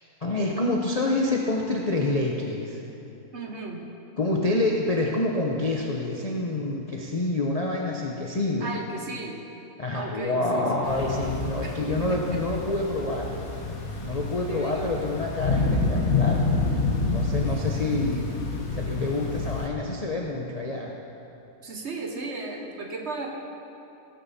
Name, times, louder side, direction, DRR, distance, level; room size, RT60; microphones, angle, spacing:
voice 1, 0.2-2.8 4.2-8.7 9.8-13.4 14.0-16.5 17.1-18.3 18.7-21.0, left 2 dB, 30° left, -2 dB, 0.8 m, -27 dB
voice 2, 3.3-3.9 4.4-4.7 8.6-9.5 9.9-11.0 11.6-12.2 14.4-15.0 21.6-23.3, right 2 dB, 50° right, 2 dB, 1.3 m, -35 dB
sound 1, 10.8-19.7, left 3 dB, 70° left, 1.8 m, -28 dB
17.5 x 9.3 x 4.2 m, 2.7 s
omnidirectional pair, 1.6 m